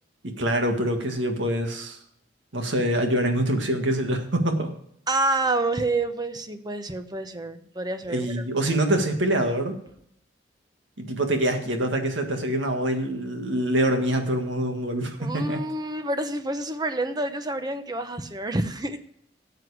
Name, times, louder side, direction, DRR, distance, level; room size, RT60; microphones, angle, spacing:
voice 1, 0.2-2.0 2.5-4.7 8.1-9.8 11.0-15.6, right 1 dB, 85° right, 5 dB, 1.7 m, -25 dB
voice 2, 5.1-8.4 15.2-19.0, right 2 dB, 20° right, 9 dB, 0.9 m, -28 dB
13.0 x 8.0 x 4.8 m, 0.71 s
head